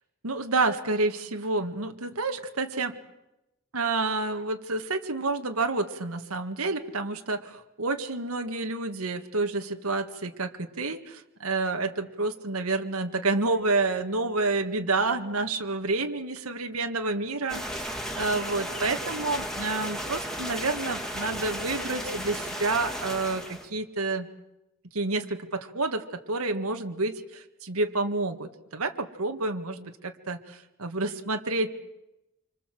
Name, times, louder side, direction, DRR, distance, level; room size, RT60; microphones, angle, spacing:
voice 1, 0.2-2.9 3.7-24.3 24.9-31.7, right 3 dB, 90° right, 6 dB, 1.9 m, -29 dB
sound 1, 17.5-23.7, equal, 5° left, 2.2 m, -34 dB
26.5 x 25.5 x 7.7 m, 0.93 s
head